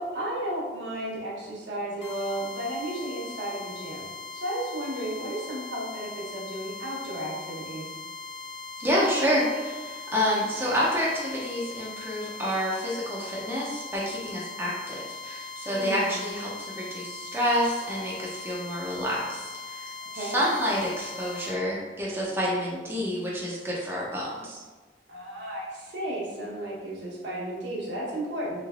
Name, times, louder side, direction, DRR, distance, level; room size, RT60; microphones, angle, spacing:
voice 1, 0.0-4.0 4.3-8.0 15.7-16.1 20.0-20.5 25.1-28.6, right 1 dB, 75° right, -5 dB, 1.0 m, -33 dB
sound 1, 2.0-21.6, left 4 dB, 70° left, 0.7 m, -40 dB
voice 2, 8.8-24.6, equal, 10° right, -6 dB, 0.5 m, -28 dB
3.3 x 3.2 x 2.4 m, 1.3 s
head